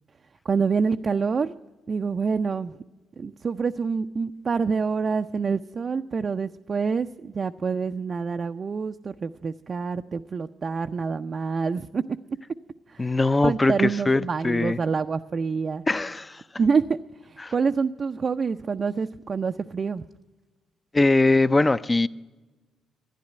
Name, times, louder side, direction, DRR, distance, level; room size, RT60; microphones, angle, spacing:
voice 1, 0.5-1.5 1.9-2.8 3.2-12.0 12.9-13.1 13.4-15.8 16.6-17.0 17.2-20.0, right 5 dB, 40° right, 0.4 m, -26 dB
voice 2, 13.0-14.8 15.9-16.4 17.4-17.5 20.9-22.1, left 2 dB, 20° left, 0.4 m, -21 dB
11.5 x 10.5 x 9.1 m
cardioid pair, 90°, 0 cm